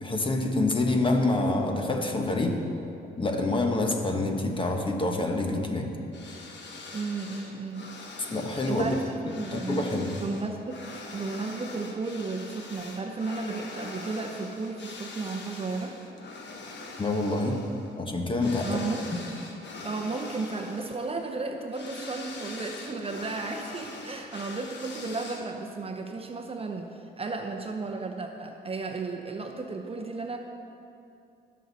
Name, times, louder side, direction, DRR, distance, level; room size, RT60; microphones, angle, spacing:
voice 1, 0.0-2.6 3.2-5.9 8.3-8.9 9.5-10.2 17.0-17.6 18.0-18.8, left 2 dB, 25° left, 3 dB, 1.3 m, -27 dB
sound 1, 6.1-25.7, left 3 dB, 60° left, 1.4 m, -43 dB
voice 2, 6.9-7.9 8.7-9.0 9.4-9.9 10.2-10.8 11.1-16.0 18.6-19.1 19.8-30.4, right 3 dB, 30° right, 4 dB, 0.8 m, -34 dB
18.5 x 6.5 x 4.2 m, 2.7 s
cardioid pair, 90°, 20 cm